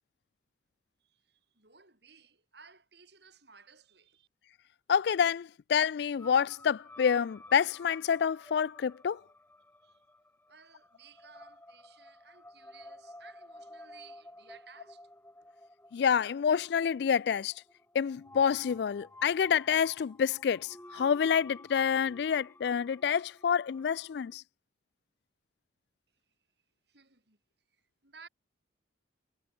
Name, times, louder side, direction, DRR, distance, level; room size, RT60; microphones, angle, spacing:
voice 1, 1.0-4.3 9.8-10.1 10.5-15.1 26.3-26.4 26.9-27.4 27.7-28.3, right 5 dB, 60° right, 6.7 m, -57 dB
voice 2, 4.9-9.2 15.9-17.5 17.9-24.4, left 7 dB, 60° left, 0.3 m, -28 dB
sound 1, 6.2-24.3, left 1 dB, 10° left, 4.6 m, -54 dB
head